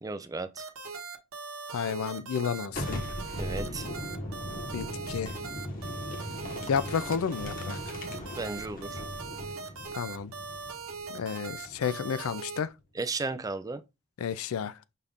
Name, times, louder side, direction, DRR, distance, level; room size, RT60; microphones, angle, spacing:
voice 1, 0.0-0.6 3.4-3.9 8.4-9.0 12.9-13.8, right 3 dB, 15° right, 0.4 m, -34 dB
sound 1, 0.6-12.6, right 4 dB, 90° right, 0.9 m, -40 dB
voice 2, 1.7-3.0 4.7-5.3 6.7-7.8 9.9-10.3 11.1-12.7 14.2-14.8, left 7 dB, 80° left, 0.4 m, -31 dB
Boom, 2.7-12.3, equal, 40° left, 1.2 m, -39 dB
5.7 x 2.5 x 3.5 m
head